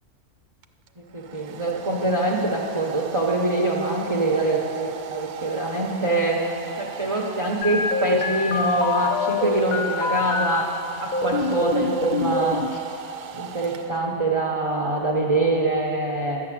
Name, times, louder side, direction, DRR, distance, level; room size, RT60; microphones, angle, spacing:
Domestic sounds home sounds, 0.6-14.4, right 8 dB, 85° right, 1.1 m, -38 dB
voice 1, 1.0-6.4 6.8-10.7 11.0-12.8 13.3-16.4, right 2 dB, 25° right, -1 dB, 0.8 m, -24 dB
sound 1, 7.6-10.6 11.1-12.7, left 3 dB, 80° left, 0.4 m, -25 dB
11.0 x 7.5 x 7.5 m, 2.9 s
omnidirectional pair, 1.5 m